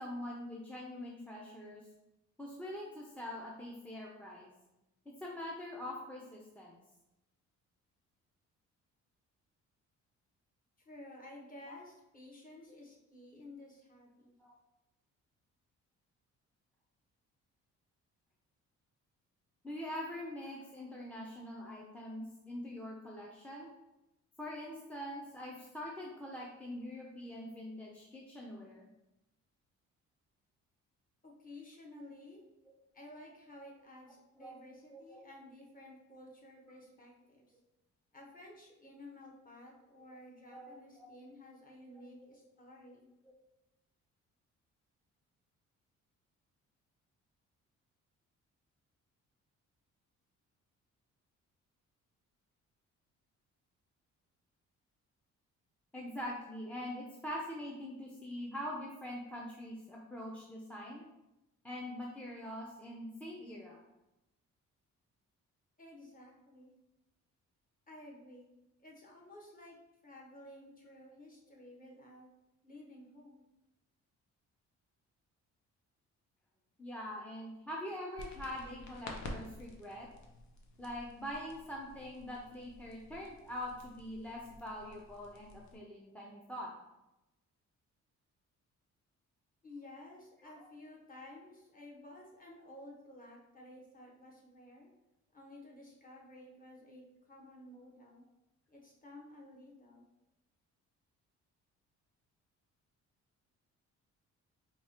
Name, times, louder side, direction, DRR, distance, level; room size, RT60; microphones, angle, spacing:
voice 1, 0.0-1.8 2.4-4.5 5.1-6.8 14.4-14.5 19.6-23.7 24.4-28.8 34.4-34.5 34.9-35.2 40.5-41.1 41.9-42.0 55.9-61.0 61.6-63.8 76.8-80.1 80.8-86.7 90.4-90.7, left 1 dB, 5° left, -3 dB, 0.5 m, -44 dB
voice 2, 10.8-14.3 31.2-32.4 32.9-37.5 38.1-43.1 65.8-66.7 67.9-68.5 68.8-69.8 70.0-72.3 72.6-73.4 89.6-94.9 95.3-98.2 98.7-100.1, left 1 dB, 30° left, -2 dB, 1.1 m, -53 dB
sound 1, 78.2-85.8, left 2 dB, 70° left, 0.7 m, -50 dB
4.6 x 2.3 x 2.9 m, 0.95 s
cardioid pair, 90°, 30 cm